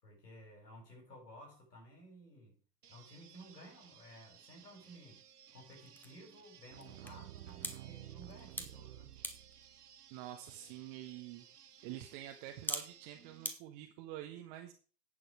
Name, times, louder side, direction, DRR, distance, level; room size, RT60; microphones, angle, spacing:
voice 1, 0.0-2.6 2.9-5.3 5.5-9.1, equal, 75° left, 7.4 m, -55 dB
sound 1, 2.8-13.5, right 9 dB, 70° right, 1.3 m, -61 dB
sound 2, 4.2-13.6, left 1 dB, 5° left, 1.2 m, -48 dB
sound 3, 6.7-9.8, right 15 dB, 50° right, 0.5 m, -51 dB
voice 2, 10.1-11.4 11.8-14.7, right 13 dB, 35° right, 1.3 m, -47 dB
11.0 x 8.6 x 4.9 m
figure-of-eight pair, 95°, 48 cm